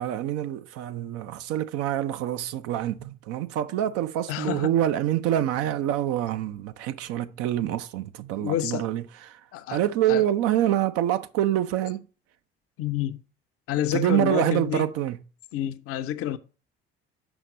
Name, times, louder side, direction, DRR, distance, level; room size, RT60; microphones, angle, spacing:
voice 1, 0.0-9.4 9.7-12.1 13.9-15.2, right 12 dB, 50° right, 0.6 m, -26 dB
voice 2, 4.3-4.7 8.4-8.9 9.5-9.8 10.1-10.2 12.8-13.2 13.7-14.9 15.5-16.4, left 12 dB, 50° left, 0.7 m, -28 dB
6.1 x 5.7 x 5.2 m
figure-of-eight pair, 55°, 30 cm